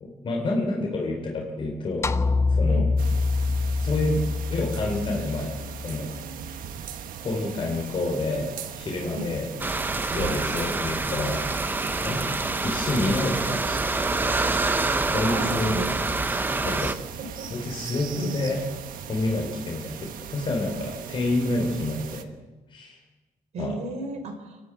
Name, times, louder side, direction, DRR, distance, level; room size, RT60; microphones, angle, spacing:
voice 1, 0.0-2.1 2.5-2.9 3.8-4.2 4.5-6.1 7.2-9.5 10.1-11.4 12.0-12.2 12.6-13.8 15.1-15.8 16.6-16.9 17.5-18.6 19.1-22.3 22.7-23.0 23.6-23.7, left 2 dB, 35° left, -1 dB, 3.7 m, -28 dB
sound 1, 2.0-6.4, left 3 dB, 20° left, 0.6 m, -25 dB
voice 2, 2.7-3.0 9.1-9.3 10.1-10.4 12.1-12.3 15.3-15.9 16.6-16.8 17.2-17.7 18.2-18.5 23.5-24.6, right 1 dB, 50° right, 3 dB, 4.4 m, -34 dB
sound 2, 3.0-22.2, right 8 dB, 75° right, 1.4 m, -39 dB
sound 3, 9.6-16.9, right 3 dB, 15° right, 0.8 m, -26 dB
29.0 x 12.5 x 8.0 m, 1.2 s
cardioid pair, 170°, 14 cm